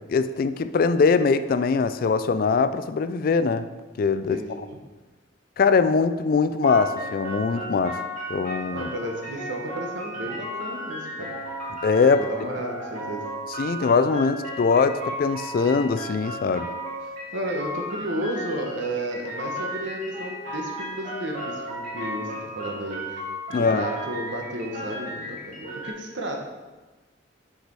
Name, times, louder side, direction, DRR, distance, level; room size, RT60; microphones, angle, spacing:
voice 1, 0.1-3.7 4.0-4.4 5.6-8.0 8.3-8.9 11.8-12.2 13.6-16.7 23.5-23.9, left 4 dB, 50° left, 12 dB, 0.3 m, -22 dB
voice 2, 4.3-4.8 8.7-11.3 12.2-13.2 17.3-23.2 23.5-26.5, right 1 dB, 70° right, 1 dB, 1.2 m, -33 dB
sound 1, 6.6-25.9, equal, 45° right, 2.4 m, -35 dB
6.6 x 4.9 x 4.7 m, 1.2 s
head